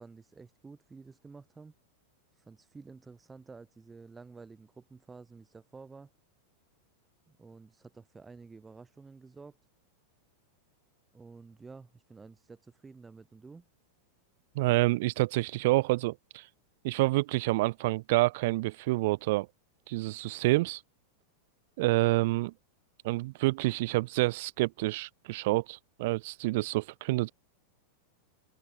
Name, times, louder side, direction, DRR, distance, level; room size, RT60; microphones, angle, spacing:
voice 1, 0.0-1.7 2.3-6.1 7.3-9.6 11.1-13.7, right 4 dB, 15° right, 7.2 m, -51 dB
voice 2, 14.5-16.5 16.8-19.5 19.9-20.8 21.8-22.5 23.0-27.3, right 20 dB, 50° right, 0.4 m, -28 dB
open air
figure-of-eight pair, 90°, 0 cm